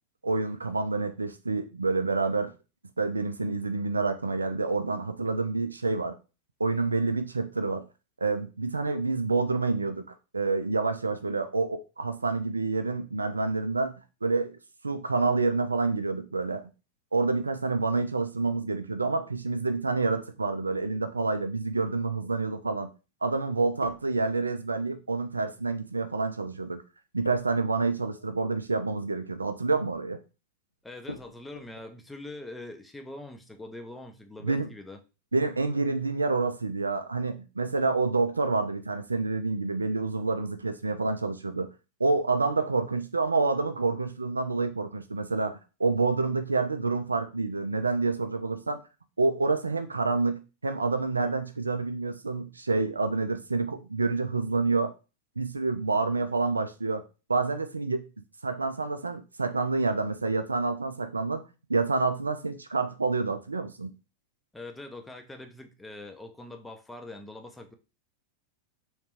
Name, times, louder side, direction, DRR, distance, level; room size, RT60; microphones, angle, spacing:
voice 1, 0.2-2.5 3.0-6.1 6.6-7.9 8.2-10.0 10.3-14.6 14.8-16.6 17.1-22.9 23.2-26.8 27.1-30.2 34.4-34.7 35.3-41.7 42.0-48.8 49.2-54.9 55.4-57.0 57.3-58.0 58.4-61.4 61.7-63.9, right 3 dB, 80° right, 0.3 m, -28 dB
sound 1, 22.1-22.5 23.8-24.7 27.2-28.8 29.0-29.3 31.1-31.9, left 2 dB, 80° left, 0.3 m, -46 dB
voice 2, 30.8-35.0 64.5-67.7, left 2 dB, 10° left, 0.5 m, -43 dB
3.3 x 3.1 x 3.0 m
figure-of-eight pair, 90°, 0 cm